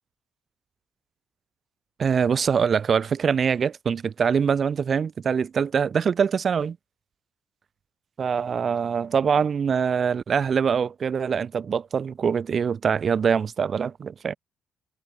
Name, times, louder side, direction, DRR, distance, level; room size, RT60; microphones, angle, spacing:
voice 1, 2.0-6.8 8.2-14.4, right 6 dB, 50° right, 2.4 m, -24 dB
cardioid pair, 90°, 0 cm